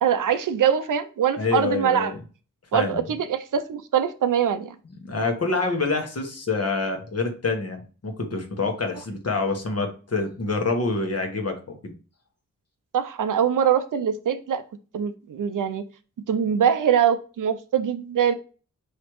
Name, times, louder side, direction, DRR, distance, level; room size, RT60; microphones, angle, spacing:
voice 1, 0.0-2.1 2.7-4.8 12.9-14.6 14.9-15.8 16.3-18.3, right 8 dB, 75° right, 10 dB, 0.6 m, -23 dB
voice 2, 1.4-2.1 2.7-3.0 5.0-11.9, left 3 dB, 50° left, 4 dB, 1.2 m, -26 dB
4.7 x 3.2 x 3.1 m, 0.36 s
cardioid pair, 45°, 33 cm